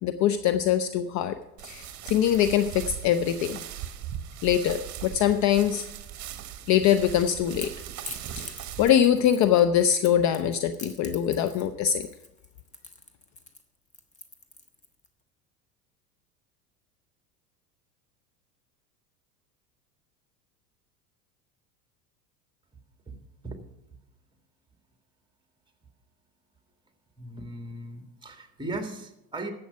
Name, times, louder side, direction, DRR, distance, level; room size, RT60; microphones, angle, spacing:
voice 1, 0.0-1.4 1.6-3.6 4.4-5.9 6.7-7.7 8.8-12.1, left 10 dB, 40° left, 10 dB, 0.6 m, -23 dB
sound 1, 1.6-8.9, right 11 dB, 35° right, 1.2 m, -39 dB
Crackle / Crack, 6.9-15.1, left 2 dB, 15° left, 1.3 m, -44 dB
voice 2, 27.2-29.5, right 2 dB, 10° right, 5 dB, 1.8 m, -37 dB
11.0 x 7.8 x 5.8 m, 0.89 s
hypercardioid pair, 80°, 48 cm